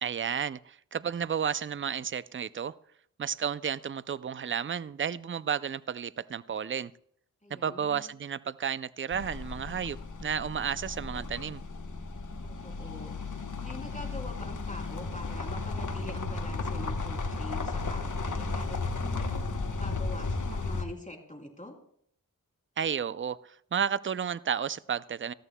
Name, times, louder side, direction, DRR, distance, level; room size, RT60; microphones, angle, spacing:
voice 1, 0.0-2.7 3.2-6.9 7.5-11.6 22.8-25.3, right 7 dB, 35° right, 17 dB, 0.4 m, -32 dB
voice 2, 7.4-8.1 12.4-13.2 13.6-19.3 19.7-21.7, left 1 dB, 20° left, 1 dB, 3.1 m, -44 dB
sound 1, 9.1-20.8, left 3 dB, 60° left, 1.0 m, -34 dB
18.0 x 14.0 x 2.2 m, 0.65 s
wide cardioid pair, 40°, 35 cm